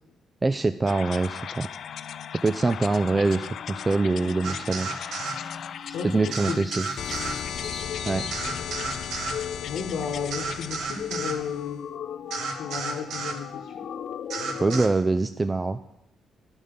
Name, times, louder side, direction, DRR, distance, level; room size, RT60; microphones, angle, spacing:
voice 1, 0.4-1.7 2.4-4.9 6.1-6.9 8.1-8.3 14.6-15.8, right 3 dB, 25° right, 10 dB, 0.3 m, -24 dB
sound 1, 0.9-14.9, left 8 dB, 65° left, 0.3 m, -36 dB
sound 2, 4.4-5.4 6.3-7.4 8.3-9.4 10.3-11.4 12.3-13.4 14.3-14.9, right 4 dB, 75° right, 1.0 m, -32 dB
sound 3, 5.3-9.3, left 3 dB, 30° left, 1.8 m, -44 dB
voice 2, 5.9-6.6 7.8-7.9 9.6-11.9 12.5-13.7, left 6 dB, 80° left, 0 dB, 1.0 m, -33 dB
11.0 x 5.4 x 5.1 m, 0.85 s
cardioid pair, 90°, 0 cm